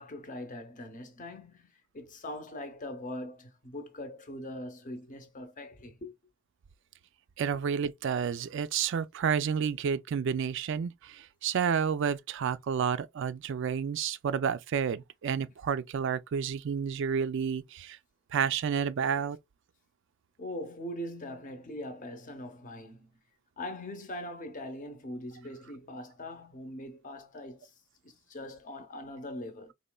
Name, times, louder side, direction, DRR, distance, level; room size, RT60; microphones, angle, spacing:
voice 1, 0.0-6.1 20.4-23.2 23.6-27.7 28.0-29.7, left 1 dB, 40° left, 0.8 m, -41 dB
voice 2, 7.4-18.0 18.3-19.4, right 7 dB, 60° right, 0.3 m, -30 dB
4.1 x 3.0 x 2.2 m
head